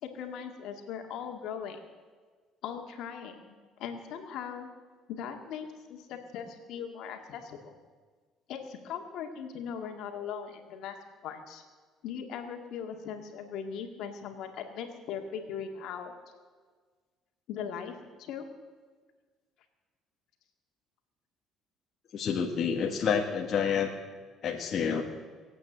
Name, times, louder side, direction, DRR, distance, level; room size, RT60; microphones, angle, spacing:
voice 1, 0.0-1.9 2.6-4.7 5.1-7.7 8.5-11.0 11.2-11.6 12.0-16.1 17.5-18.5, left 7 dB, 70° left, 4 dB, 1.9 m, -39 dB
voice 2, 22.1-23.9 24.4-25.0, left 7 dB, 50° left, 1 dB, 1.5 m, -28 dB
20.0 x 8.5 x 7.9 m, 1.5 s
cardioid pair, 105°, 0 cm